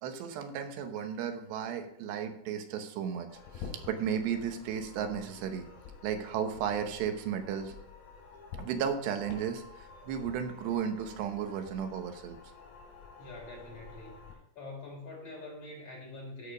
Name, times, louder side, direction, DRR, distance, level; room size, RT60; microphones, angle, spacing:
voice 1, 0.0-3.3 3.5-5.7 6.0-7.7 8.6-12.4, right 8 dB, 85° right, 6 dB, 3.2 m, -34 dB
sound 1, 3.3-14.4, left 5 dB, 75° left, 4.5 m, -49 dB
voice 2, 13.2-16.5, left 2 dB, 35° left, -3 dB, 4.6 m, -45 dB
13.5 x 5.0 x 5.0 m, 0.73 s
omnidirectional pair, 4.8 m